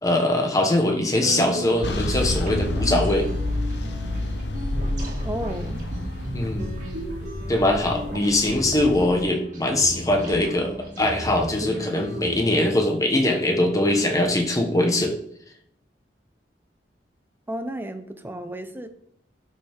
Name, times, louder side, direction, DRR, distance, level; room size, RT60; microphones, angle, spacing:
voice 1, 0.0-3.3 6.3-6.7 7.5-15.2, left 1 dB, 20° left, 3 dB, 1.2 m, -22 dB
sound 1, 1.1-12.4, equal, 45° right, 2.0 m, -35 dB
sound 2, 1.8-9.2, left 1 dB, 75° left, 0.9 m, -29 dB
voice 2, 5.2-5.8 17.5-18.9, right 1 dB, 10° right, 8 dB, 0.7 m, -32 dB
12.0 x 5.6 x 3.6 m, 0.71 s
head